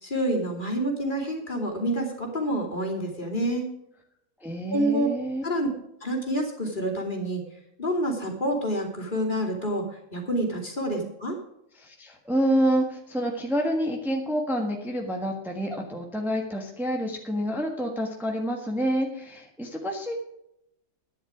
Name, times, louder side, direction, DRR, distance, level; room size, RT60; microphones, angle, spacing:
voice 1, 0.0-3.7 4.7-5.1 5.4-5.7 6.0-7.4 7.8-11.4, right 1 dB, 35° left, 0 dB, 2.9 m, -28 dB
voice 2, 4.4-5.4 11.8-20.2, equal, ahead, 1 dB, 1.4 m, -28 dB
11.5 x 10.5 x 5.0 m, 0.79 s
omnidirectional pair, 1.4 m